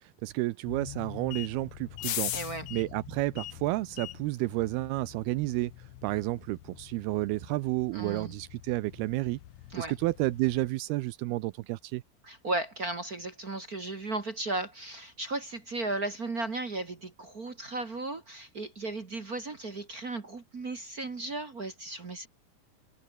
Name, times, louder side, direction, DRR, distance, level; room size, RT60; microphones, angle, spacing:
voice 1, 0.0-2.3 2.7-5.7 6.0-9.4 9.8-12.0, right 19 dB, 85° right, 2.6 m, -31 dB
sound 1, 0.6-10.7, left 14 dB, 80° left, 1.6 m, -42 dB
voice 2, 2.3-2.7 7.9-8.3 9.7-9.9 12.2-22.3, right 2 dB, 40° right, 1.4 m, -35 dB
omnidirectional pair, 4.6 m